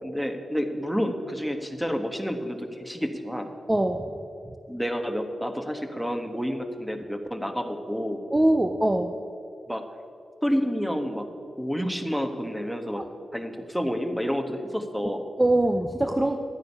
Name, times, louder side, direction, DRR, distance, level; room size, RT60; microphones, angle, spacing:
voice 1, 0.0-3.5 4.7-8.2 9.7-9.8 10.4-11.3 11.6-13.1 13.3-15.2, equal, ahead, 6 dB, 1.2 m, -29 dB
voice 2, 3.7-4.1 4.5-4.6 8.3-9.1 13.0-13.1 15.4-16.4, right 1 dB, 15° right, 6 dB, 0.6 m, -23 dB
12.0 x 9.2 x 5.5 m, 2.6 s
cardioid pair, 70°, 0 cm